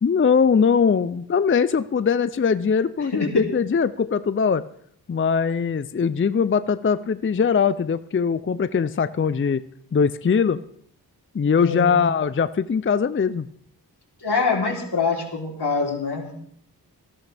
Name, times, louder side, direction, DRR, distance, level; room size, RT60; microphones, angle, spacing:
voice 1, 0.0-4.7 5.1-9.6 9.9-10.6 11.3-13.5, left 6 dB, 35° left, 14 dB, 0.4 m, -21 dB
voice 2, 3.1-3.4 11.6-12.0 14.2-16.3, left 4 dB, 85° left, -1 dB, 3.5 m, -24 dB
19.0 x 14.5 x 3.4 m, 0.66 s
wide cardioid pair, 60°, 39 cm